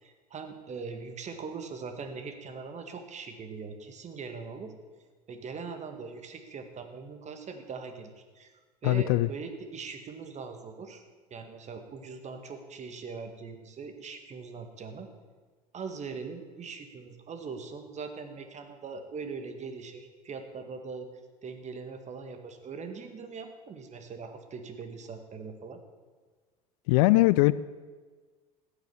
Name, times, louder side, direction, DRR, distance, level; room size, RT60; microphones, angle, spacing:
voice 1, 0.0-4.7 5.3-8.5 8.8-11.0 11.3-15.1 15.7-21.1 21.4-25.8, right 5 dB, 35° right, 7 dB, 2.0 m, -41 dB
voice 2, 8.8-9.3 26.9-27.5, left 19 dB, 65° left, 18 dB, 0.5 m, -21 dB
15.0 x 8.9 x 7.2 m, 1.4 s
figure-of-eight pair, 70°, 20 cm